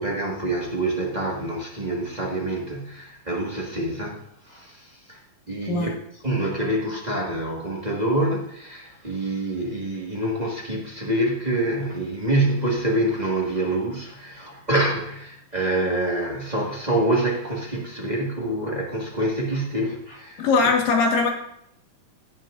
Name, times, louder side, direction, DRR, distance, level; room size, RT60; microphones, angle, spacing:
voice 1, 0.0-5.2 5.5-5.9 6.2-20.4, right 1 dB, 35° right, -3 dB, 0.7 m, -26 dB
voice 2, 20.4-21.3, left 4 dB, 80° left, 2 dB, 3.3 m, -20 dB
17.0 x 7.5 x 2.5 m, 0.75 s
omnidirectional pair, 3.9 m